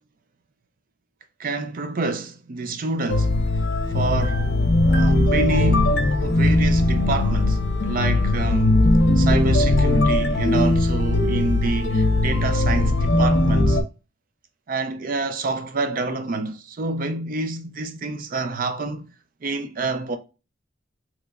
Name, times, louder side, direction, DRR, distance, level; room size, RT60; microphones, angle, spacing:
voice 1, 1.4-3.4 3.9-4.4 4.9-8.8 9.2-13.8 14.7-19.1 19.4-20.2, right 3 dB, 45° right, 0.4 m, -27 dB
sound 1, 3.1-13.8, left 2 dB, 65° left, 0.6 m, -19 dB
3.6 x 3.0 x 2.2 m
head